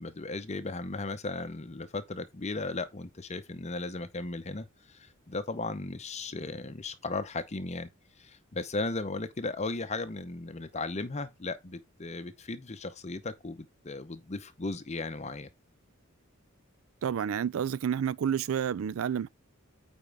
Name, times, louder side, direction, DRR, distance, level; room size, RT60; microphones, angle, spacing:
voice 1, 0.0-7.9 8.2-15.5, left 3 dB, 35° left, 0.7 m, -36 dB
voice 2, 17.0-19.3, right 8 dB, 80° right, 0.4 m, -29 dB
9.0 x 4.5 x 3.4 m
head